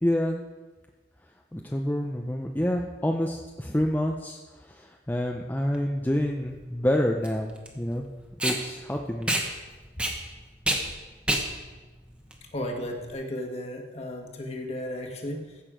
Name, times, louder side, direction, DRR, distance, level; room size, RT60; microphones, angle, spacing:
voice 1, 0.0-0.4 1.5-8.1 8.4-9.4, left 1 dB, 10° left, 1 dB, 0.6 m, -28 dB
Packing tape duct tape, 5.6-13.1, right 1 dB, 5° right, 1.1 m, -31 dB
voice 2, 12.5-15.6, left 1 dB, 35° left, 2 dB, 1.5 m, -34 dB
15.0 x 6.6 x 5.0 m, 1.2 s
head